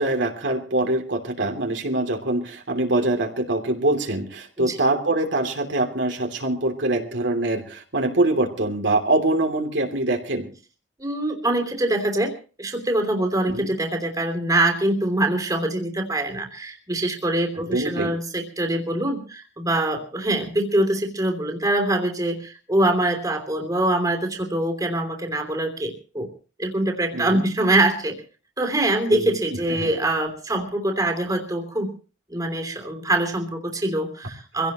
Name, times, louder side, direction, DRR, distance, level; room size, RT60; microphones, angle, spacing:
voice 1, 0.0-10.5 13.5-13.7 17.5-18.1 27.1-27.4 29.1-29.4 29.7-29.9, right 2 dB, 70° right, 3 dB, 3.1 m, -24 dB
voice 2, 11.0-12.3 12.6-26.3 26.6-28.2 28.6-31.9 32.3-34.7, right 1 dB, 20° right, 4 dB, 3.1 m, -24 dB
24.5 x 16.5 x 3.1 m, 0.36 s
head